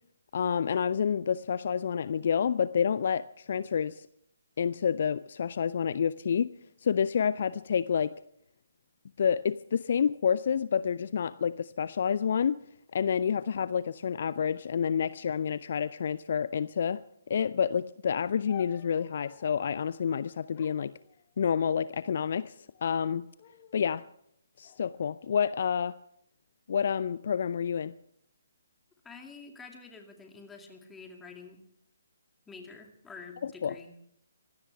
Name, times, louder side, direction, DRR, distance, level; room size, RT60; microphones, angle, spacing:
voice 1, 0.3-4.1 4.6-6.5 6.8-8.1 9.2-12.6 12.9-20.9 21.4-23.2 23.7-24.0 24.6-25.9 26.7-27.9 33.4-33.7, left 7 dB, 50° left, 16 dB, 0.5 m, -29 dB
sound 1, 18.5-19.7 20.5-21.8 22.5-23.0 23.4-23.9 24.6-25.6, left 10 dB, 30° left, 1.8 m, -52 dB
voice 2, 29.0-31.6 32.5-33.9, left 4 dB, 10° left, 3 dB, 2.4 m, -48 dB
24.5 x 17.0 x 3.4 m, 0.73 s
figure-of-eight pair, 135°, 0 cm